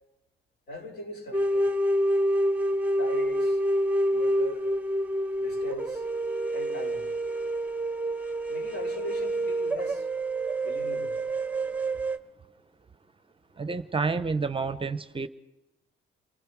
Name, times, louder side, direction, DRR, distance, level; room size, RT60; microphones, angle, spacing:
voice 1, 0.7-1.7 3.0-3.6 4.1-4.7 5.4-6.0 6.5-7.0 8.5-10.1 10.6-11.2, left 1 dB, 55° left, 6.1 m, -39 dB
sound 1, 1.3-12.2, right 1 dB, 5° right, 1.1 m, -27 dB
voice 2, 13.5-15.3, right 4 dB, 25° right, 0.8 m, -29 dB
29.0 x 20.5 x 4.7 m
cardioid pair, 90°, 20 cm